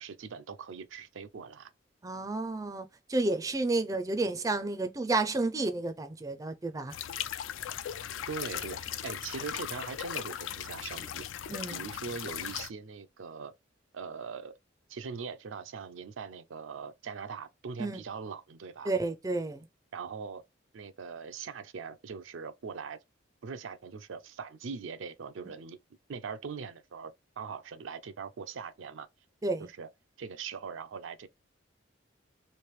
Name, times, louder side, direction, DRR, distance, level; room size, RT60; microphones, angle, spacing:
voice 1, 0.0-1.7 8.3-11.3 11.7-13.5 13.9-14.5 14.9-18.9 19.9-20.4 20.7-23.0 23.4-25.8 26.1-29.1 29.6-29.9 30.2-31.3, right 5 dB, 85° right, 0.5 m, -41 dB
voice 2, 2.0-6.9 11.5-11.8 17.8-18.0 18.8-19.7 29.4-29.7, right 2 dB, 20° right, 0.4 m, -31 dB
sound 1, 6.9-12.7, left 10 dB, 85° left, 0.4 m, -38 dB
3.2 x 2.6 x 3.1 m
head